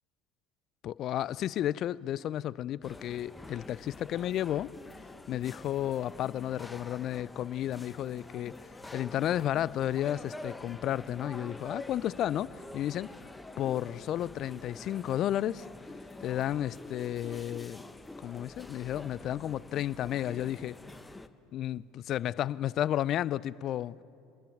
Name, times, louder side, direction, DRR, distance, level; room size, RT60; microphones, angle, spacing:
voice 1, 0.8-4.7 5.3-13.1 13.6-15.7 16.2-17.8 18.2-20.8 21.5-24.0, left 12 dB, 50° left, 0.5 m, -32 dB
sound 1, 2.8-21.3, left 2 dB, 10° left, 1.2 m, -47 dB
25.5 x 20.5 x 9.3 m
hypercardioid pair, 75°, 0 cm